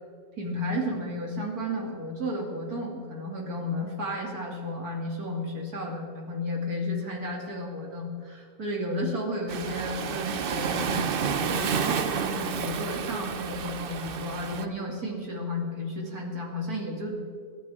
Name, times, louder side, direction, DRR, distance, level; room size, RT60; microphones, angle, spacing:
voice 1, 0.4-10.9 11.4-17.4, left 1 dB, 55° right, -1 dB, 3.1 m, -33 dB
Waves surf, 9.5-14.6, right 6 dB, 90° right, 0.4 m, -30 dB
27.0 x 11.5 x 3.6 m, 2.3 s
omnidirectional pair, 1.9 m